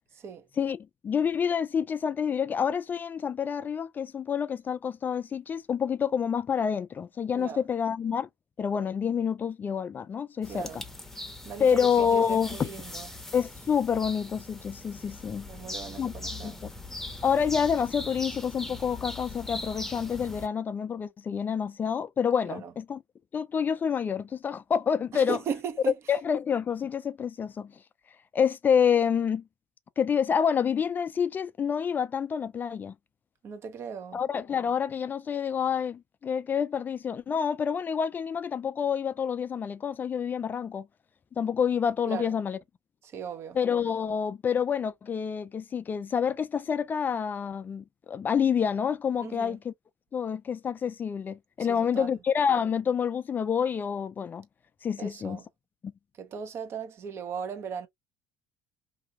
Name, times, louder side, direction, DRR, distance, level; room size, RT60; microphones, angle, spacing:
voice 1, 1.0-8.3 8.6-10.8 11.6-12.7 13.3-15.5 16.0-16.5 17.2-23.0 23.3-25.4 26.1-27.7 28.3-29.4 30.0-32.9 34.1-40.9 41.4-42.6 43.6-49.7 50.1-54.5 54.8-55.4 55.8-55.9, left 7 dB, 30° left, 0.4 m, -28 dB
sound 1, 10.4-20.5, left 2 dB, 5° left, 0.8 m, -40 dB
voice 2, 10.5-10.8 11.4-13.1 15.5-16.6 22.4-22.7 25.1-26.0 33.4-34.2 42.1-42.3 43.0-43.6 49.2-49.6 51.7-52.2 55.0-55.4 56.2-57.9, right 6 dB, 45° right, 0.8 m, -38 dB
2.7 x 2.7 x 2.4 m
supercardioid pair, 80°, 6 cm